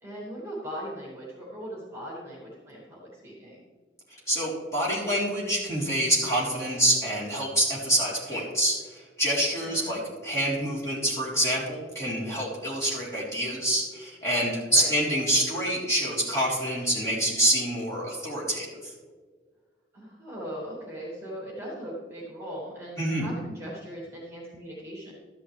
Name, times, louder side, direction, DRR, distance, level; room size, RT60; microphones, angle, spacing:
voice 1, 0.0-3.7 9.6-10.0 14.6-14.9 19.9-25.1, equal, 15° right, -6 dB, 2.6 m, -39 dB
voice 2, 4.3-18.9 23.0-23.3, right 1 dB, 15° left, -6 dB, 3.7 m, -26 dB
13.5 x 11.0 x 3.3 m, 1.5 s
head